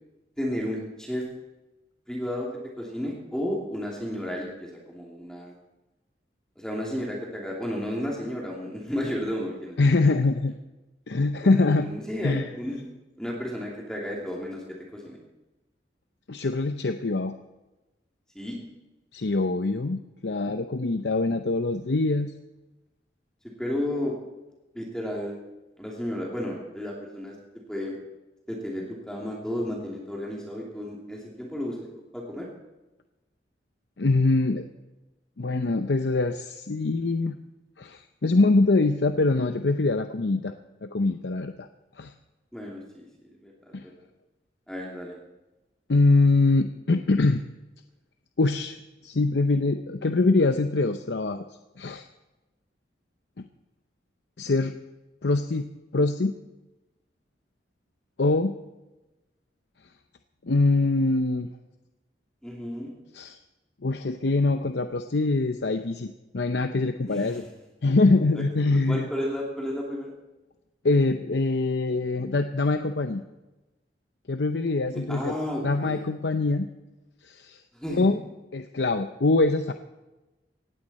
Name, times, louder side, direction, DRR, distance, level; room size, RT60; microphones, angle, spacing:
voice 1, 0.4-1.2 2.1-2.5 2.8-5.5 6.6-10.2 11.4-12.8 13.2-15.2 18.3-18.6 23.6-24.1 24.7-25.4 25.8-27.4 27.7-28.0 28.5-31.9 32.1-32.5 42.5-43.1 43.4-43.5 44.7-45.2 62.4-62.9 67.1-67.5 68.3-68.4 68.9-70.1 74.9-76.1 77.7-78.2, left 1 dB, 5° left, -2 dB, 2.8 m, -32 dB
voice 2, 9.8-10.5 11.1-11.9 12.2-12.5 16.3-17.4 19.1-22.3 34.0-34.6 35.4-37.4 37.8-40.5 40.8-41.7 42.0-42.1 43.7-43.8 45.9-47.4 48.4-48.8 49.0-51.4 51.8-52.1 53.4-53.5 54.4-54.8 55.2-55.7 55.9-56.3 58.2-58.5 60.5-61.5 63.2-63.4 63.8-67.4 67.8-69.1 70.8-73.2 74.3-75.3 75.6-76.7 77.3-77.6 77.9-78.2 78.5-79.7, left 3 dB, 80° left, 8 dB, 0.7 m, -23 dB
19.0 x 15.5 x 4.3 m, 1.0 s
head